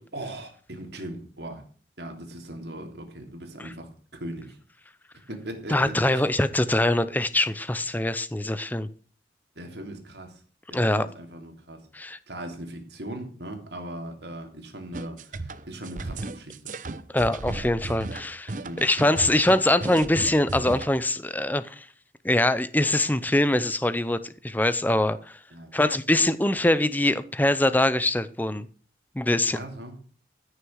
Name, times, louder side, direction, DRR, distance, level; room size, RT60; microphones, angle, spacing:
voice 1, 0.1-1.6 2.0-4.6 5.3-6.3 9.5-10.4 10.7-11.9 12.3-16.7 18.6-18.8 25.5-25.9 29.5-30.0, right 1 dB, 65° right, 3.2 m, -39 dB
voice 2, 5.7-8.9 10.7-11.1 11.9-12.2 17.1-21.9 22.2-25.4 25.7-28.7 29.2-29.6, left 1 dB, 10° left, 0.6 m, -23 dB
sound 1, 14.9-20.9, right 2 dB, 45° right, 0.8 m, -35 dB
14.0 x 6.7 x 6.4 m
head